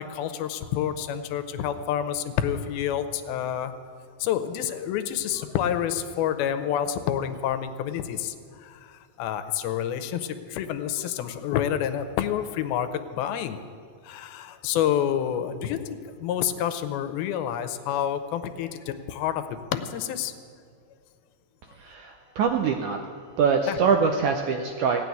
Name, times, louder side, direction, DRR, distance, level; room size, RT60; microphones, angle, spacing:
voice 1, 0.0-3.7 4.2-13.6 14.0-20.3 23.7-23.8, left 10 dB, 85° left, 10 dB, 2.6 m, -28 dB
voice 2, 21.8-23.0 23.4-25.0, right 5 dB, 80° right, 4 dB, 1.8 m, -24 dB
17.0 x 6.7 x 9.4 m, 2.1 s
omnidirectional pair, 4.3 m